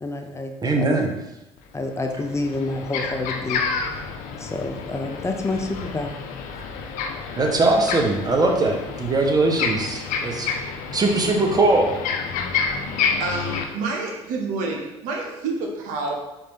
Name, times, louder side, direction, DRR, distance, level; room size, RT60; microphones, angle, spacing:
voice 1, 0.0-1.0 1.7-3.6 4.4-6.2, left 2 dB, 20° left, 4 dB, 0.5 m, -28 dB
voice 2, 0.6-1.1 7.4-10.5 10.9-11.9, right 2 dB, 30° right, 2 dB, 0.8 m, -20 dB
sound 1, 1.6-1.7 2.1-13.6, left 5 dB, 70° left, 0.5 m, -29 dB
voice 3, 9.9-11.0 12.3-16.2, right 3 dB, 75° right, 0 dB, 0.8 m, -30 dB
4.3 x 2.6 x 3.6 m, 0.97 s
supercardioid pair, 70°, 14 cm